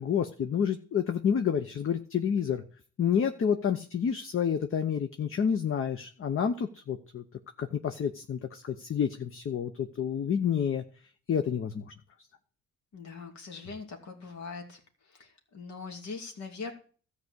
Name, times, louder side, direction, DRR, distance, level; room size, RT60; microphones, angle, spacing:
voice 1, 0.0-2.6 3.0-7.2 7.6-10.8 11.3-11.8, left 7 dB, 45° left, 8 dB, 0.9 m, -29 dB
voice 2, 12.9-14.8 15.1-16.7, left 4 dB, 70° left, 3 dB, 2.6 m, -41 dB
13.5 x 4.9 x 8.1 m, 0.44 s
cardioid pair, 90°, 30 cm